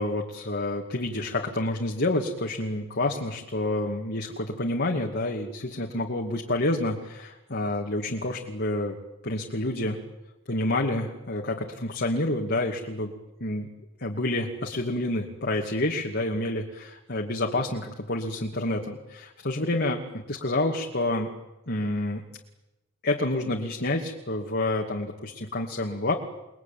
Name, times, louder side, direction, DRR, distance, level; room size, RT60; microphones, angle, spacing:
voice 1, 0.0-9.0 9.2-10.0 10.5-13.1 13.4-13.7 14.0-21.3 21.7-22.2 23.0-26.1, left 2 dB, 55° left, 1 dB, 2.5 m, -28 dB
29.5 x 22.0 x 9.3 m, 0.99 s
head